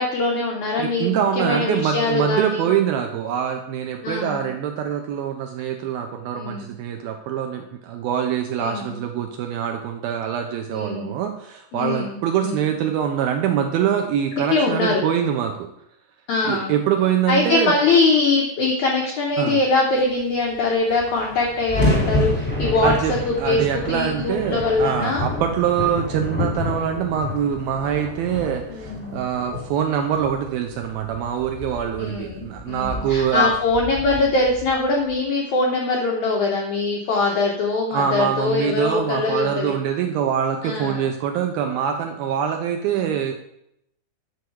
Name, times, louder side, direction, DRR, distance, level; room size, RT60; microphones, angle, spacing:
voice 1, 0.0-2.7 4.0-4.5 6.3-6.7 8.6-9.0 10.7-11.1 11.7-12.6 14.5-15.0 16.3-16.7 17.3-23.6 23.9-25.3 28.7-29.2 32.0-39.7 40.6-41.0 42.9-43.2, left 3 dB, 90° left, 0 dB, 1.6 m, -22 dB
voice 2, 0.8-15.7 16.4-17.7 19.4-19.6 22.8-33.5 37.9-43.3, right 9 dB, 85° right, 4 dB, 2.2 m, -24 dB
sound 1, 20.5-20.6 20.8-35.2, left 1 dB, 10° left, 0.6 m, -29 dB
9.5 x 6.3 x 4.7 m, 0.76 s
omnidirectional pair, 4.9 m